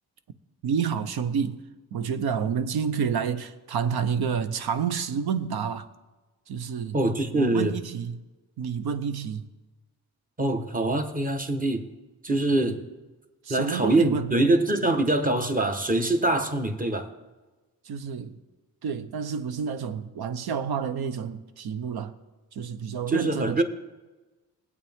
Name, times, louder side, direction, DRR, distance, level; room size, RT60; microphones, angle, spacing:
voice 1, 0.6-1.6 1.9-5.9 6.5-7.0 7.3-8.2 8.6-9.5 13.4-14.3 17.8-18.4 18.8-22.1 22.5-23.6, right 7 dB, 75° right, 0.9 m, -29 dB
voice 2, 6.9-7.7 10.4-11.8 12.2-12.8 13.5-17.1 23.1-23.6, right 2 dB, 20° right, 1.4 m, -24 dB
20.5 x 8.4 x 3.6 m
cardioid pair, 75°, 38 cm